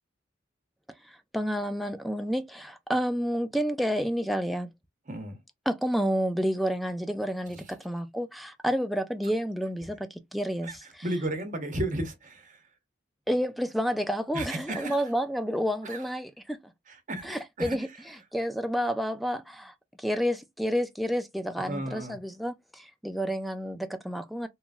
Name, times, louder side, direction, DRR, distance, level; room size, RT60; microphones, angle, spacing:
voice 1, 1.0-4.7 5.7-11.1 13.3-16.6 17.2-17.9 18.3-24.5, equal, ahead, 0.3 m, -30 dB
voice 2, 5.1-5.4 7.5-7.6 10.6-10.8 11.0-12.6 14.3-15.0 15.8-16.0 16.9-17.8 21.6-22.2, right 1 dB, 40° right, 0.9 m, -34 dB
3.0 x 2.5 x 2.3 m
head